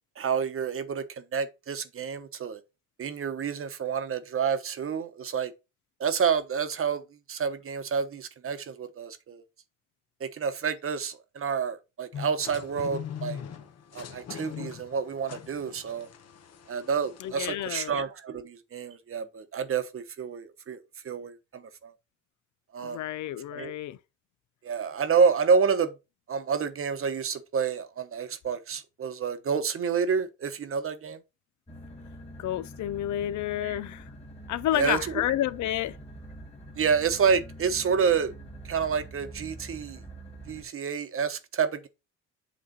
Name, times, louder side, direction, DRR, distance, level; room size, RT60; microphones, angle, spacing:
voice 1, 0.2-2.6 3.0-5.5 6.0-7.0 7.3-9.4 10.2-13.4 13.9-16.1 16.7-21.9 22.7-23.0 23.5-23.7 24.6-25.9 26.3-31.2 33.6-33.8 34.7-35.2 36.8-38.3 38.6-40.0 40.5-41.9, right 6 dB, 45° right, 1.0 m, -29 dB
sound 1, 12.1-17.5, left 8 dB, 55° left, 1.0 m, -41 dB
voice 2, 17.2-17.9 22.8-24.0 32.4-34.0 34.5-35.9, left 13 dB, 70° left, 0.5 m, -30 dB
sound 2, 31.7-40.6, right 1 dB, 20° left, 2.0 m, -45 dB
8.1 x 3.2 x 3.9 m
cardioid pair, 90°, 30 cm